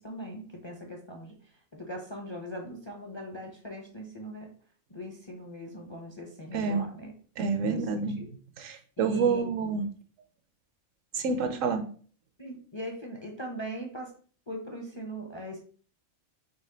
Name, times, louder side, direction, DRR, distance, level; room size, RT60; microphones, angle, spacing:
voice 1, 0.0-4.5 4.9-7.1 7.6-7.9 8.2-8.3 9.0-9.5 12.4-14.1 14.5-15.6, equal, 35° left, 1 dB, 0.5 m, -40 dB
voice 2, 6.5-6.8 7.4-8.2 8.6-9.8 11.1-11.8, right 5 dB, 75° right, 7 dB, 1.0 m, -28 dB
4.2 x 2.9 x 3.9 m, 0.43 s
omnidirectional pair, 1.4 m